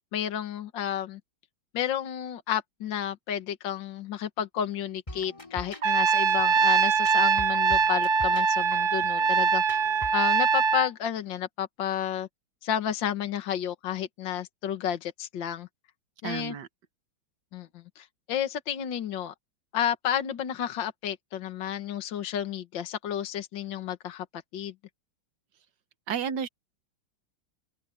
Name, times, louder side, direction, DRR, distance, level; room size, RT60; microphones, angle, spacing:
voice 1, 0.1-1.2 1.7-9.6 10.1-12.3 12.6-15.7 16.2-16.5 17.5-17.7 18.0-19.3 19.7-24.3 24.5-24.7, left 10 dB, 65° left, 2.0 m, -31 dB
sound 1, 5.1-10.3, left 1 dB, 15° left, 3.6 m, -43 dB
Trumpet, 5.8-10.9, right 5 dB, 45° right, 1.2 m, -23 dB
voice 2, 16.2-16.7 26.1-26.5, right 7 dB, 60° right, 1.6 m, -31 dB
open air
omnidirectional pair, 2.2 m